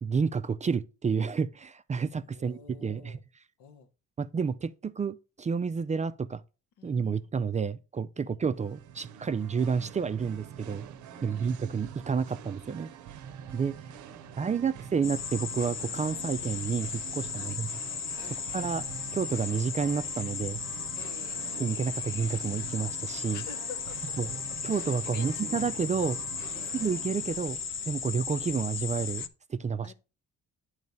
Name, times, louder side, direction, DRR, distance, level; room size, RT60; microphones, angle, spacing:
voice 1, 0.0-3.2 4.2-6.4 6.8-10.8 11.2-12.9 13.5-13.7 14.4-17.7 18.2-18.8 19.1-20.6 21.5-23.4 24.2-24.3 24.6-26.2 26.7-27.6 27.9-29.9, right 6 dB, 25° right, 0.3 m, -30 dB
voice 2, 2.2-3.2 3.6-3.9 6.8-7.3 8.2-8.4 11.1-11.5 13.8-14.9 17.3-17.6 18.2-18.4 21.0-21.5 23.3-24.1 24.7-25.6 26.5-26.7 29.8-29.9, left 7 dB, 85° left, 0.9 m, -50 dB
Singing, 8.5-27.6, right 9 dB, 75° right, 0.6 m, -46 dB
sound 1, 15.0-29.3, left 6 dB, 40° left, 0.6 m, -36 dB
9.2 x 3.2 x 5.2 m
cardioid pair, 90°, 30 cm